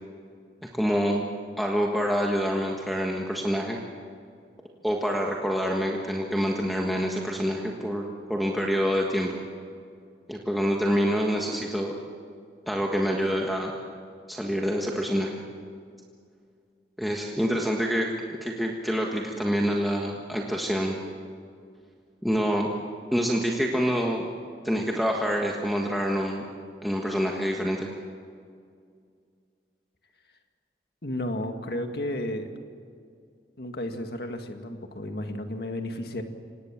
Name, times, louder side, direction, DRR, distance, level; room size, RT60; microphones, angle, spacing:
voice 1, 0.7-1.2 1.6-3.8 4.8-9.4 10.3-11.9 12.7-13.7 14.3-15.4 17.0-18.1 18.4-21.0 22.2-22.7 23.1-24.3 24.6-26.4 26.8-27.9, equal, ahead, -1 dB, 1.5 m, -26 dB
voice 2, 31.0-32.5 33.6-36.2, left 1 dB, 60° left, 5 dB, 2.0 m, -32 dB
26.0 x 19.0 x 7.5 m, 2.2 s
head